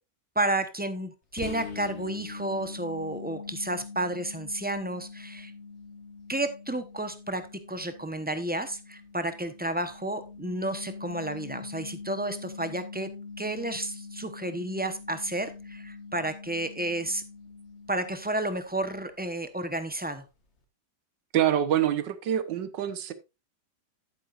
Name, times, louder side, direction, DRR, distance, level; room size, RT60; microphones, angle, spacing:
voice 1, 0.3-5.5 6.3-13.1 13.4-17.2 17.9-20.2, right 1 dB, 10° right, 9 dB, 0.6 m, -31 dB
sound 1, 1.4-18.9, left 4 dB, 40° left, 1.8 m, -43 dB
voice 2, 21.3-23.1, right 10 dB, 85° right, 12 dB, 1.7 m, -26 dB
11.0 x 9.2 x 2.5 m, 0.26 s
omnidirectional pair, 1.9 m